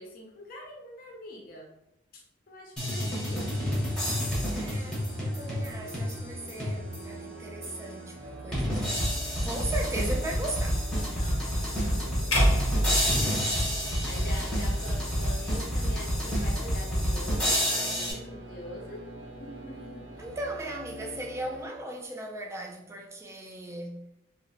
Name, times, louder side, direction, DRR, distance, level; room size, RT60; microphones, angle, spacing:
voice 1, 0.0-1.7 2.1-3.5 11.1-13.6 14.0-19.1 19.4-20.0, left 1 dB, 50° left, 0.5 m, -45 dB
sound 1, 2.8-7.2 7.6-7.7 8.5-18.1, equal, 5° left, 0.8 m, -29 dB
sound 2, 3.4-21.7, equal, 80° right, 0.6 m, -44 dB
voice 2, 4.5-10.8 20.2-24.0, right 1 dB, 15° right, 0.3 m, -38 dB
sound 3, 12.3-14.6, equal, 85° left, 0.7 m, -27 dB
2.7 x 2.0 x 2.7 m
head